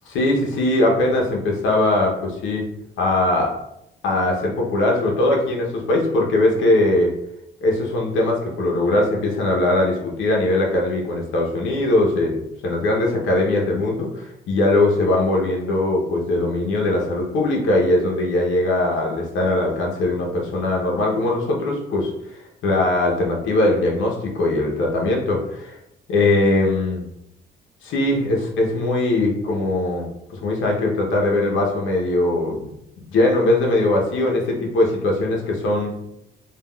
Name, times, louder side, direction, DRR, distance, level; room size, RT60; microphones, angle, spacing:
voice 1, 0.1-2.6 3.0-3.5 4.0-7.1 7.6-25.8 26.1-27.0 27.8-30.1 30.3-32.7 33.1-36.0, left 2 dB, 80° left, -1 dB, 0.7 m, -20 dB
3.3 x 2.3 x 2.2 m, 0.83 s
cardioid pair, 90°, 20 cm